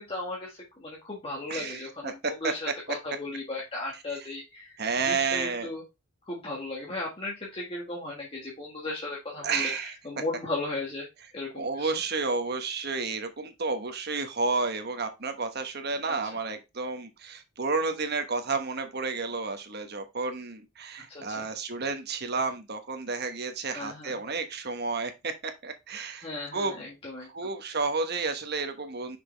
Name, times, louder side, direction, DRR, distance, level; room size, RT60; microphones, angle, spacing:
voice 1, 0.0-4.7 5.0-5.8 6.2-9.7 10.0-11.1 11.3-11.9 16.1-16.2 21.1-21.4 23.7-24.2 26.2-27.3, left 2 dB, 30° left, 1.7 m, -36 dB
voice 2, 1.5-2.5 4.8-5.7 9.4-10.0 11.6-26.8 27.3-29.2, right 4 dB, 50° right, 1.2 m, -31 dB
6.0 x 5.1 x 3.3 m
head